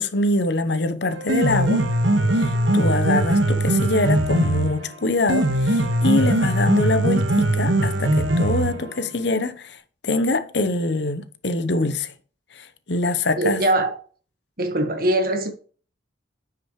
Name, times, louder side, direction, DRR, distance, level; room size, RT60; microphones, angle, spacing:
voice 1, 0.0-1.9 2.4-9.8 10.0-12.1 12.5-13.6, left 2 dB, 60° left, 0.9 m, -24 dB
Piano, 1.1-9.1, right 1 dB, 80° right, 1.4 m, -21 dB
voice 2, 13.4-13.9 14.6-15.5, right 1 dB, 50° right, 1.5 m, -21 dB
10.0 x 6.1 x 3.2 m
head